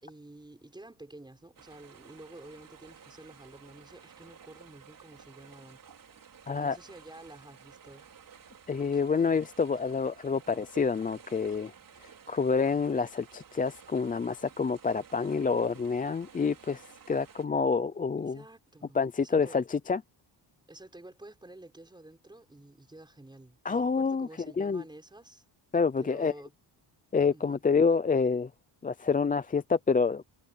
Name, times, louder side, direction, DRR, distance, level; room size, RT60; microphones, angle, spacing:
voice 1, 0.0-6.1 6.5-8.1 9.1-9.4 18.2-19.6 20.7-25.4 26.0-26.5 27.3-27.6, right 2 dB, 10° right, 5.4 m, -50 dB
sound 1, 1.6-17.5, right 7 dB, 45° right, 4.9 m, -54 dB
voice 2, 6.5-6.8 8.7-11.7 12.0-18.4 18.9-20.0 23.6-24.3 24.6-24.8 25.7-26.3 27.1-28.5 28.8-30.2, left 5 dB, 20° left, 0.4 m, -28 dB
wide cardioid pair, 160°, 45 cm